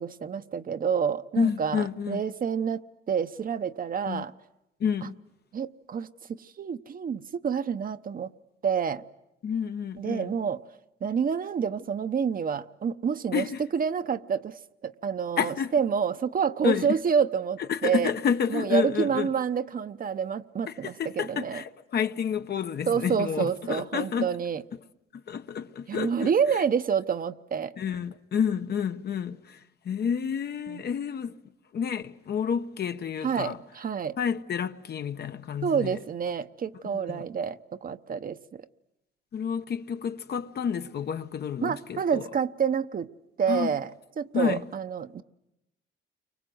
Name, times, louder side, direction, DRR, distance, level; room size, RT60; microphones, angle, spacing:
voice 1, 0.0-2.8 3.1-4.3 5.0-5.1 5.5-6.1 6.4-8.3 8.6-9.0 10.0-10.6 11.0-13.5 13.7-18.1 18.5-21.6 22.9-24.6 25.9-27.8 30.7-30.8 33.2-34.2 35.6-38.7 41.6-43.1 43.4-43.9 44.2-45.2, right 7 dB, 45° right, 0.9 m, -28 dB
voice 2, 1.4-2.2 4.0-4.2 4.8-5.1 9.4-10.3 13.3-13.6 15.4-15.7 16.6-17.0 17.7-19.3 20.7-24.3 25.1-26.6 27.8-31.4 31.7-33.6 34.2-36.0 36.9-37.2 39.3-42.2 43.5-43.7 44.3-44.7, left 7 dB, 55° left, 1.1 m, -30 dB
30.0 x 24.5 x 7.9 m
cardioid pair, 90°, 20 cm